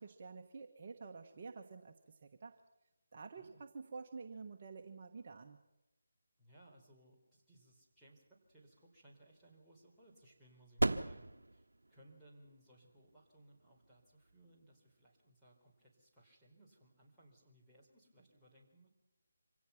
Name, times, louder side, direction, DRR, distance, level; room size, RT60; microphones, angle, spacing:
voice 1, 0.0-2.6 3.1-5.6, right 4 dB, 40° right, 3 dB, 1.3 m, -50 dB
voice 2, 6.4-8.2 8.5-18.9, right 1 dB, ahead, -10 dB, 4.4 m, -64 dB
sound 1, 8.2-15.5, right 2 dB, 80° right, 0.9 m, -42 dB
25.5 x 17.0 x 6.0 m, 0.95 s
figure-of-eight pair, 160°, 0 cm